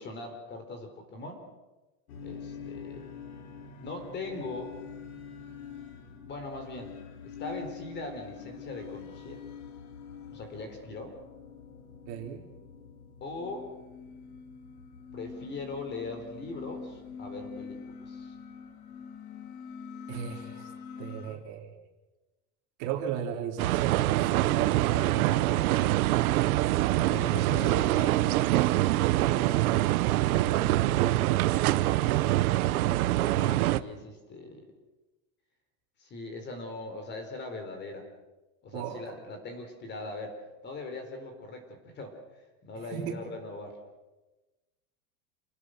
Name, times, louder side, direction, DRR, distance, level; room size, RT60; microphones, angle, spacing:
voice 1, 0.0-1.5 2.2-3.1 3.8-4.8 6.3-9.4 10.3-11.2 13.2-13.7 15.1-18.3 27.1-28.4 31.9-32.5 33.2-34.7 36.0-38.1 38.6-40.4 40.6-43.8, left 2 dB, 25° left, 6 dB, 4.1 m, -40 dB
sound 1, 2.1-21.4, left 6 dB, 75° left, 3.6 m, -45 dB
voice 2, 12.1-12.4 20.1-20.7 21.0-21.7 22.8-25.8 27.4-27.5 29.1-29.8 30.1-31.3 38.7-39.2 42.8-43.1, right 9 dB, 40° right, 2 dB, 3.4 m, -36 dB
sound 2, 23.6-33.8, right 16 dB, 75° right, 1.1 m, -25 dB
28.5 x 20.0 x 6.5 m, 1.1 s
supercardioid pair, 165°, 44 cm